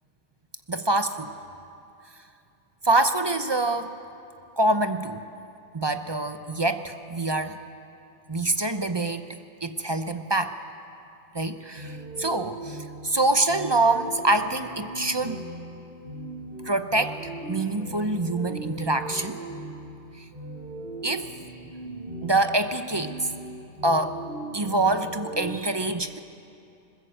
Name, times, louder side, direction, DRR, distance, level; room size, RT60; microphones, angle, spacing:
voice 1, 0.7-1.3 2.8-3.9 4.6-5.2 5.7-7.6 8.3-9.3 9.6-10.6 11.3-15.5 16.6-19.4 20.2-20.3 21.0-21.3 22.2-23.3 23.8-24.2 24.5-26.2, right 2 dB, 25° right, 9 dB, 0.6 m, -25 dB
sound 1, 11.7-25.5, right 1 dB, 50° right, 7.8 m, -39 dB
22.0 x 20.5 x 7.9 m, 2.6 s
omnidirectional pair, 1.2 m